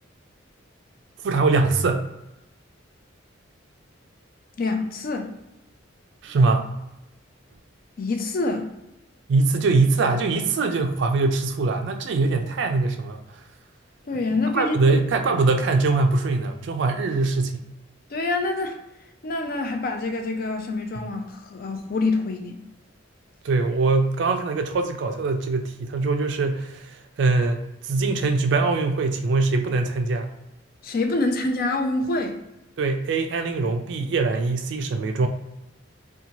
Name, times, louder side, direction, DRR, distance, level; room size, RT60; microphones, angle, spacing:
voice 1, 1.2-2.1 6.2-6.7 9.3-13.2 14.5-17.6 23.4-30.3 32.8-35.3, right 3 dB, 60° right, 6 dB, 0.3 m, -22 dB
voice 2, 4.6-5.3 8.0-8.7 14.1-15.0 18.1-18.8 19.2-22.6 30.8-32.4, left 2 dB, 45° left, 4 dB, 0.4 m, -26 dB
2.7 x 2.2 x 2.9 m, 0.89 s
head